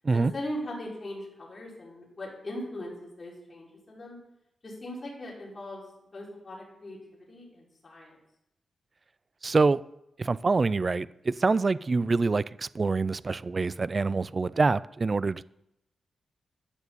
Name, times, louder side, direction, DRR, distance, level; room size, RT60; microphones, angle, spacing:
voice 1, 0.1-4.2 4.6-5.8 6.1-8.2, left 1 dB, 30° left, 4.0 m, -39 dB
voice 2, 9.4-9.8 10.2-15.4, right 3 dB, 30° right, 0.3 m, -25 dB
12.0 x 7.2 x 6.9 m
wide cardioid pair, 165°, 0 cm